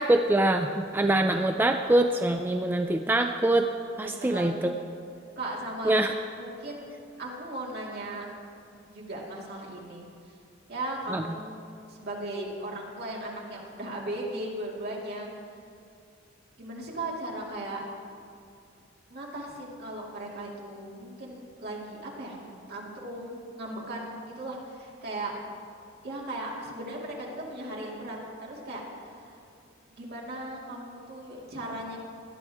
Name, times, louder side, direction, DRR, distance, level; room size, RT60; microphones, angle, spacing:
voice 1, 0.0-3.7 4.0-4.7 5.8-6.1 11.1-11.2, right 1 dB, 10° right, 5 dB, 0.4 m, -24 dB
voice 2, 4.0-4.7 5.4-5.9 6.4-6.9 7.2-8.2 8.9-10.0 10.7-11.6 11.9-15.3 16.6-17.8 19.1-22.4 22.7-25.3 26.0-29.4 29.9-32.0, right 1 dB, 55° right, -3 dB, 2.5 m, -37 dB
17.5 x 11.0 x 3.5 m, 2.5 s
head